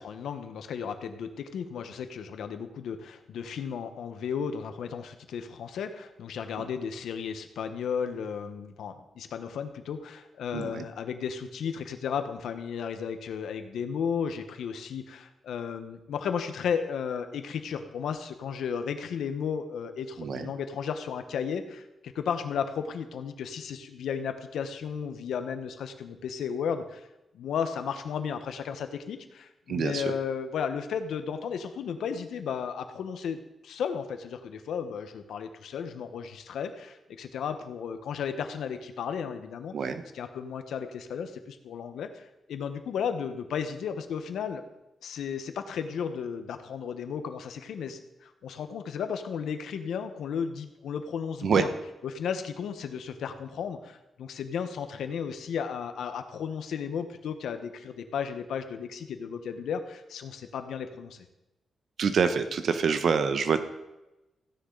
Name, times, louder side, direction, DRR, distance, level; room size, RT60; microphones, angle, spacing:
voice 1, 0.0-21.8 22.1-27.1 27.3-44.6 45.0-51.7 52.0-61.3, left 7 dB, 85° left, 8 dB, 1.2 m, -34 dB
voice 2, 10.5-10.8 20.2-20.5 29.7-30.0 39.7-40.0 51.4-51.6 62.0-63.6, right 6 dB, 65° right, 9 dB, 1.1 m, -26 dB
15.5 x 10.0 x 4.0 m, 0.96 s
cardioid pair, 100°, 0 cm